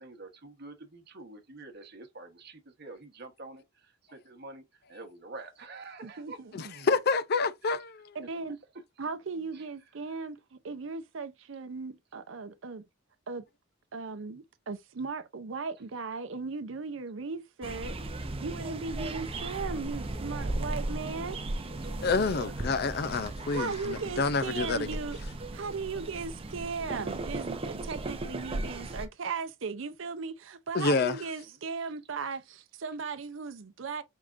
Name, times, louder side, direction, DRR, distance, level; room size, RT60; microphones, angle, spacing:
voice 1, 0.0-3.6 4.1-4.6 4.9-6.4 9.5-9.6 22.2-22.5 27.9-28.0, right 2 dB, 55° right, 1.1 m, -46 dB
voice 2, 6.0-6.8 8.1-8.6 9.0-12.8 13.3-13.4 13.9-18.1 18.4-21.4 23.5-25.2 25.5-34.0, right 4 dB, 75° right, 0.6 m, -37 dB
voice 3, 6.5-7.9 22.0-25.0 30.7-31.2, left 4 dB, 55° left, 0.5 m, -28 dB
sound 1, 17.6-29.1, right 2 dB, 30° right, 0.6 m, -36 dB
4.7 x 3.6 x 2.5 m
head